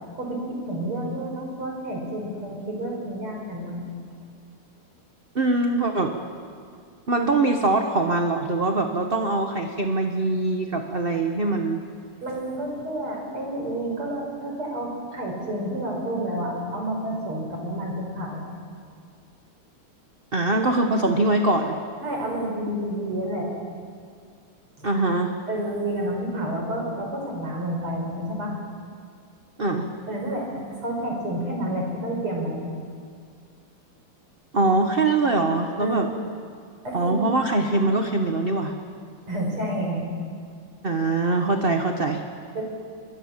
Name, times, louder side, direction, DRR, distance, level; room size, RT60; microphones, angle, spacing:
voice 1, 0.2-3.8 12.2-18.4 22.0-23.5 25.5-28.5 30.1-30.5 30.8-32.7 35.8-36.2 36.8-37.2 39.3-40.0 42.5-42.6, right 1 dB, 75° right, 0 dB, 6.3 m, -29 dB
voice 2, 5.3-6.1 7.1-11.8 20.3-21.8 24.8-25.3 29.6-29.9 34.5-36.1 36.9-38.7 40.8-42.2, right 2 dB, 30° right, 4 dB, 1.2 m, -23 dB
26.0 x 23.0 x 7.4 m, 2.2 s
omnidirectional pair, 2.4 m